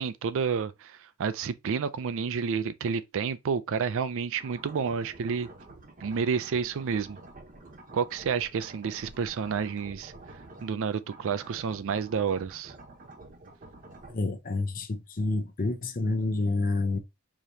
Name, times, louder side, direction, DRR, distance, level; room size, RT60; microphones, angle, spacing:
voice 1, 0.0-5.5 6.0-7.2 7.9-10.1 10.6-12.7, right 6 dB, 65° right, 0.4 m, -30 dB
sound 1, 4.3-10.8 11.0-14.2, right 2 dB, 40° right, 0.9 m, -49 dB
voice 2, 14.1-17.0, left 2 dB, 40° left, 0.7 m, -28 dB
4.9 x 3.0 x 2.7 m
head